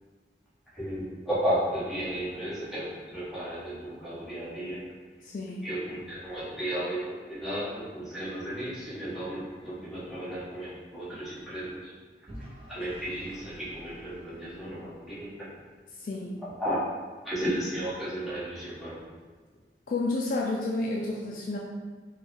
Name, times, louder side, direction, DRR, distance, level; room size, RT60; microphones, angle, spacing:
voice 1, 0.7-4.9 5.6-11.9 12.7-15.5 16.4-16.8 17.2-19.0, right 1 dB, ahead, -12 dB, 1.2 m, -34 dB
voice 2, 5.2-5.6 16.0-16.4 19.9-21.6, left 2 dB, 45° left, -3 dB, 0.3 m, -30 dB
Vehicle / Engine, 12.3-15.3, equal, 30° right, 0.5 m, -49 dB
4.3 x 2.3 x 3.2 m, 1.5 s
head